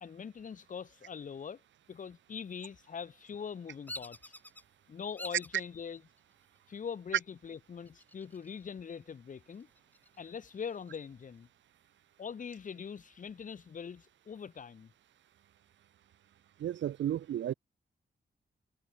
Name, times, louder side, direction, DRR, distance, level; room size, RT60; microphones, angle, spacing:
voice 1, 0.0-1.6 1.9-4.3 4.9-6.0 6.7-9.7 10.2-11.5 12.2-14.9, left 6 dB, 45° left, 0.7 m, -42 dB
Bird vocalization bird call bird song, 3.9-4.6 5.2-5.6 6.2-6.7 7.9-8.6 9.0-9.1 9.5-10.9, left 1 dB, 10° left, 3.0 m, -47 dB
voice 2, 16.6-17.5, right 11 dB, 90° right, 0.7 m, -33 dB
cardioid pair, 90°, 19 cm